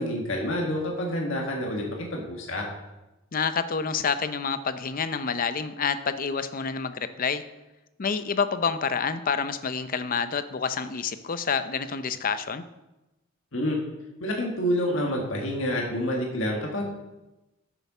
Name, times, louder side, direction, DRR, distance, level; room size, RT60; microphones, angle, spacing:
voice 1, 0.0-2.6 13.5-13.8 14.2-16.9, equal, 70° left, -1 dB, 1.7 m, -28 dB
voice 2, 3.3-7.4 8.0-12.6, left 6 dB, 45° left, 11 dB, 0.6 m, -28 dB
8.6 x 6.9 x 6.0 m, 1.0 s
head